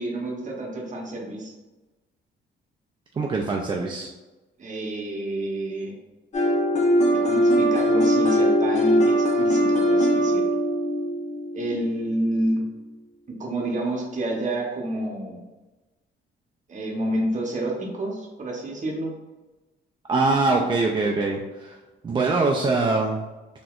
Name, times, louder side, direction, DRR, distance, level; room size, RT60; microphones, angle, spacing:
voice 1, 0.0-1.5 4.6-6.0 7.1-10.5 11.5-12.6 13.3-15.4 16.7-19.1, right 1 dB, 40° right, -1 dB, 0.9 m, -29 dB
voice 2, 3.2-4.1 20.1-21.8 22.0-23.2, right 3 dB, 25° right, -1 dB, 0.3 m, -23 dB
sound 1, 6.3-12.2, equal, 35° left, 0.8 m, -21 dB
3.9 x 2.8 x 2.4 m, 1.1 s
cardioid pair, 90°, 20 cm